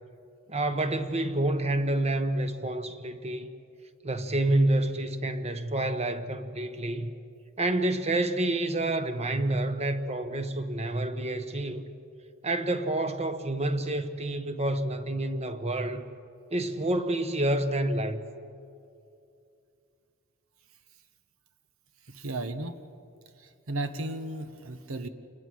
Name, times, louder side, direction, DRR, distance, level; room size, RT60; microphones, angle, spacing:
voice 1, 0.5-3.5 4.0-7.1 7.6-11.8 12.4-16.0 16.5-18.2, right 1 dB, 30° right, 1.1 m, -28 dB
voice 2, 22.1-22.7 23.4-25.1, right 2 dB, 75° right, 1.2 m, -35 dB
28.0 x 21.0 x 6.3 m
head